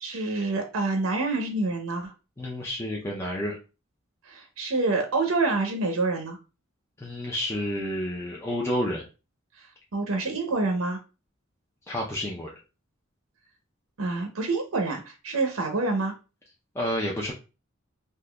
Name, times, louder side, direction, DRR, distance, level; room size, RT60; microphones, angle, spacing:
voice 1, 0.0-2.1 4.2-6.4 9.6-9.7 9.9-11.0 14.0-16.1, right 3 dB, 85° right, 4 dB, 0.7 m, -27 dB
voice 2, 2.4-3.6 7.0-9.0 11.9-12.5 16.7-17.3, equal, 15° left, -3 dB, 0.5 m, -30 dB
3.6 x 2.8 x 2.2 m, 0.31 s
head